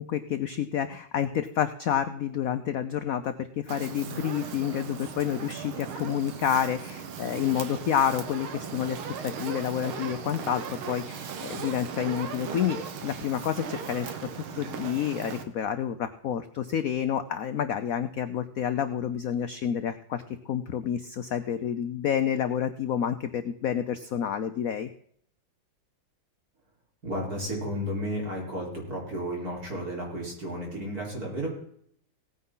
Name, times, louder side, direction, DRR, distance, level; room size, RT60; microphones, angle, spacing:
voice 1, 0.0-9.0 9.2-14.1 14.5-24.9, left 9 dB, 70° left, 10 dB, 0.8 m, -29 dB
Fire, 3.7-15.4, right 6 dB, 85° right, 2.1 m, -38 dB
voice 2, 27.0-31.5, equal, 45° right, -2 dB, 4.7 m, -33 dB
17.5 x 9.6 x 3.8 m, 0.66 s
omnidirectional pair, 2.2 m